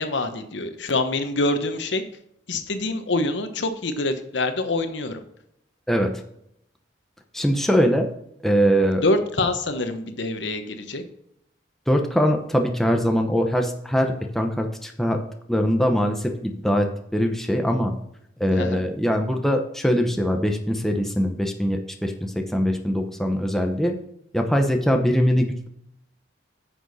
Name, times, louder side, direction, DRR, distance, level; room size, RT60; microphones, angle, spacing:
voice 1, 0.0-2.0 2.5-5.2 9.0-11.0 18.6-18.8, left 2 dB, 80° left, 8 dB, 1.1 m, -25 dB
voice 2, 5.9-6.2 7.3-8.1 8.4-9.0 11.9-15.2 15.5-18.0 18.4-24.0 24.3-25.7, equal, ahead, 3 dB, 0.8 m, -22 dB
9.9 x 6.3 x 4.1 m, 0.74 s
head